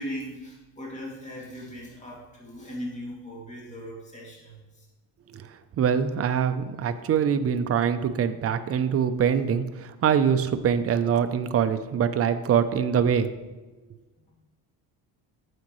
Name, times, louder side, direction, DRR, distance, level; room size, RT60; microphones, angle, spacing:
voice 1, 0.0-4.9 14.3-14.4, equal, 15° left, -4 dB, 2.4 m, -38 dB
voice 2, 5.8-13.3, right 7 dB, 35° right, 10 dB, 0.5 m, -24 dB
9.3 x 7.5 x 3.1 m, 1.2 s
cardioid pair, 125°, 44 cm